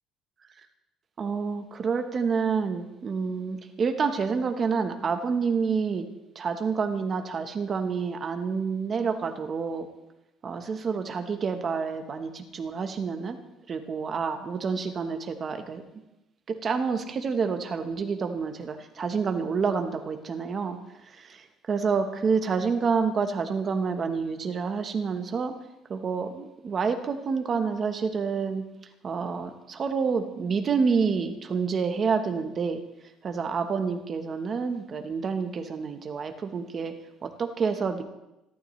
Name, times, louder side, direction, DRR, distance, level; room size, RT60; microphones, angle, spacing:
voice 1, 1.2-6.1 6.3-9.9 10.4-13.4 13.7-15.8 16.5-20.8 21.2-21.4 21.7-25.5 25.9-28.6 29.0-32.8 33.2-38.0, right 5 dB, 30° right, 7 dB, 1.1 m, -28 dB
28.0 x 12.0 x 3.2 m, 0.94 s
cardioid pair, 170°, 0 cm